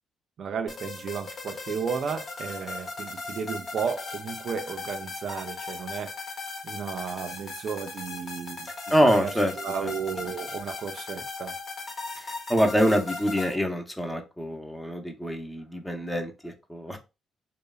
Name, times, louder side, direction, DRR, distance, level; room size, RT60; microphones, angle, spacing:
voice 1, 0.4-6.2 6.6-8.7 9.0-11.6, right 6 dB, 60° right, 0.4 m, -33 dB
sound 1, 0.7-13.6, left 3 dB, 45° left, 0.7 m, -38 dB
voice 2, 8.9-9.5 9.8-9.9 12.2-17.0, equal, 5° left, 0.6 m, -25 dB
3.0 x 2.0 x 2.3 m
cardioid pair, 90°, 0 cm